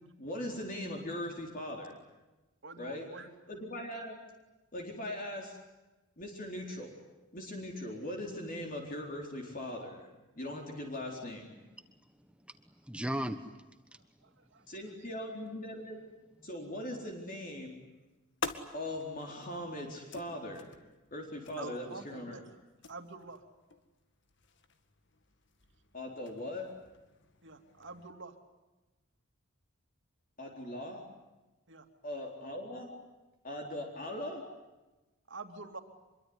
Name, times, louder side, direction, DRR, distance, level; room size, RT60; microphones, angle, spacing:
voice 1, 0.2-1.9 2.8-3.1 3.5-4.2 4.7-5.6 6.2-6.9 7.3-10.1 10.4-11.6 14.7-16.0 16.4-17.8 18.7-20.7 21.1-22.4 25.9-26.7 30.4-31.0 32.0-32.9 33.4-34.4, left 1 dB, 40° left, 1 dB, 4.1 m, -40 dB
voice 2, 2.6-3.3 13.9-14.7 21.6-22.5 22.9-23.4 27.4-28.3 31.7-31.9 35.3-35.8, right 3 dB, 55° right, 6 dB, 2.9 m, -47 dB
voice 3, 11.8-14.1 14.4-14.7, equal, 5° right, 9 dB, 1.2 m, -40 dB
sound 1, 17.7-28.1, left 4 dB, 55° left, 2.0 m, -48 dB
26.0 x 23.0 x 9.7 m, 1.1 s
head